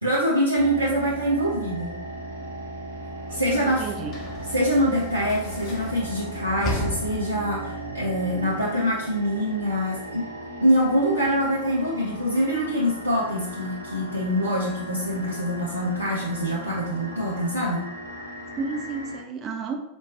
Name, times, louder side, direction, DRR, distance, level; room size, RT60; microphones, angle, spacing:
voice 1, 0.0-2.0 3.3-3.9 4.5-10.2 10.6-17.8, equal, 85° right, -5 dB, 0.6 m, -24 dB
sound 1, 0.5-19.2, right 1 dB, 90° left, 0.7 m, -37 dB
Sliding door / Slam, 3.0-7.7, left 2 dB, 30° left, 0.8 m, -35 dB
voice 2, 3.3-4.1 18.6-19.8, right 4 dB, 30° right, 3 dB, 0.6 m, -32 dB
4.3 x 3.0 x 2.8 m, 0.83 s
figure-of-eight pair, 90°, 0 cm